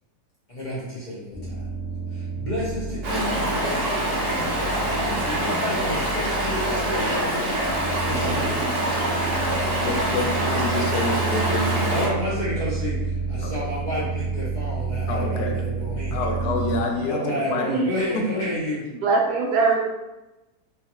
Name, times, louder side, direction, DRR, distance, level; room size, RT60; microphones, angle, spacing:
voice 1, 0.5-1.6 2.1-3.0 5.2-7.4 8.0-8.6 11.9-16.2 17.0-18.8, left 1 dB, 40° left, -8 dB, 0.6 m, -30 dB
sound 1, 1.3-16.8, right 4 dB, 5° right, 0.5 m, -30 dB
Stream, 3.0-12.1, right 1 dB, 60° right, 1.0 m, -25 dB
voice 2, 9.8-11.9 13.4-13.5 15.1-15.5 16.1-17.7 18.1-18.2, left 3 dB, 80° left, 2 dB, 1.1 m, -28 dB
voice 3, 17.1-17.9 18.9-19.8, right 4 dB, 80° right, -2 dB, 1.2 m, -23 dB
3.1 x 2.3 x 2.8 m, 1.0 s
omnidirectional pair, 1.7 m